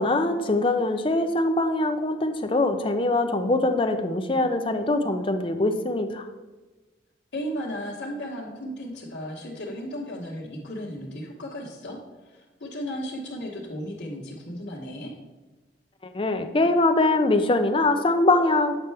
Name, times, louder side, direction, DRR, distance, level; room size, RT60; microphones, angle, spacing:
voice 1, 0.0-6.2 16.1-18.7, left 2 dB, 30° left, 7 dB, 0.5 m, -23 dB
voice 2, 7.3-12.0 12.2-15.1, equal, 80° left, -7 dB, 1.2 m, -35 dB
8.2 x 5.5 x 3.4 m, 1.2 s
head